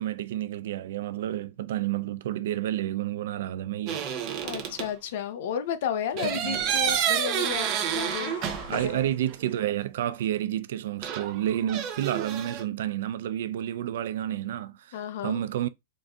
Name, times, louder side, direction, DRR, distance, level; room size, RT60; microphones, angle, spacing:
voice 1, 0.0-4.0 6.2-6.6 8.7-15.7, right 12 dB, 65° right, 0.4 m, -30 dB
sound 1, 3.9-4.9 6.2-9.0 9.3-9.4 11.0-12.6, right 9 dB, 30° right, 0.7 m, -29 dB
voice 2, 4.4-8.3 8.7-9.1 14.9-15.4, left 8 dB, 55° left, 0.7 m, -33 dB
sound 2, 7.7-9.7, left 4 dB, 80° left, 1.9 m, -42 dB
3.8 x 2.6 x 3.5 m
supercardioid pair, 170°, 0 cm